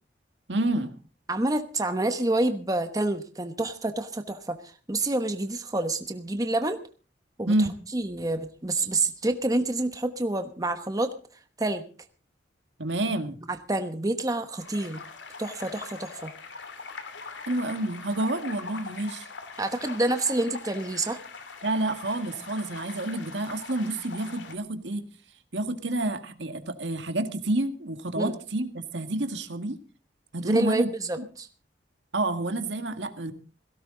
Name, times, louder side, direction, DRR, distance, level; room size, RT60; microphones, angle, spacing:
voice 1, 0.5-0.9 7.5-7.8 12.8-13.4 17.5-19.3 21.6-25.1 25.5-29.8 30.3-30.9 32.1-33.3, right 2 dB, 80° right, 8 dB, 1.8 m, -29 dB
voice 2, 1.3-4.6 4.9-6.8 7.4-7.5 7.9-11.1 11.6-11.8 13.5-15.0 15.4-16.3 19.6-21.2 28.2-28.3 30.4-31.5, right 2 dB, 20° right, 8 dB, 1.1 m, -28 dB
sound 1, 14.6-24.6, left 4 dB, 80° left, 2.8 m, -42 dB
17.5 x 17.0 x 3.9 m, 0.36 s
head